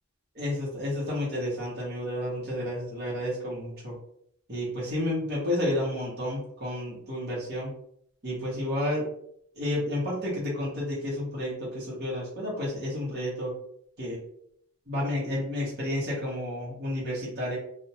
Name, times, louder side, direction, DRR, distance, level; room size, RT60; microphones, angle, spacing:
voice 1, 0.3-3.9 4.5-7.7 8.2-9.1 9.5-13.5 14.0-14.2 14.9-17.6, left 1 dB, 50° right, -6 dB, 1.0 m, -31 dB
2.5 x 2.1 x 2.8 m, 0.69 s
head